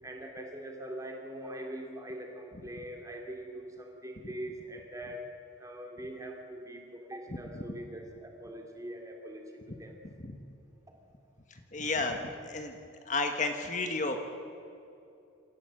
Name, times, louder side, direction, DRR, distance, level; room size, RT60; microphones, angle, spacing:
voice 1, 0.0-5.3 5.6-10.0, right 1 dB, 15° right, 2 dB, 2.7 m, -42 dB
voice 2, 11.5-12.7 13.0-14.2, left 3 dB, 40° left, 5 dB, 1.3 m, -32 dB
27.0 x 14.0 x 7.7 m, 2.7 s
head